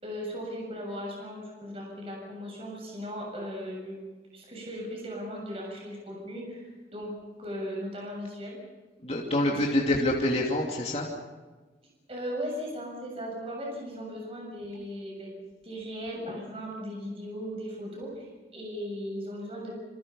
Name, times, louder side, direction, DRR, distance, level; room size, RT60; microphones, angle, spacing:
voice 1, 0.0-4.0 4.3-6.6 6.9-8.6 12.1-15.3 15.6-19.7, equal, 35° right, -1 dB, 7.1 m, -37 dB
voice 2, 9.0-11.1, left 1 dB, 35° left, -2 dB, 2.8 m, -26 dB
28.0 x 26.5 x 5.6 m, 1.3 s
head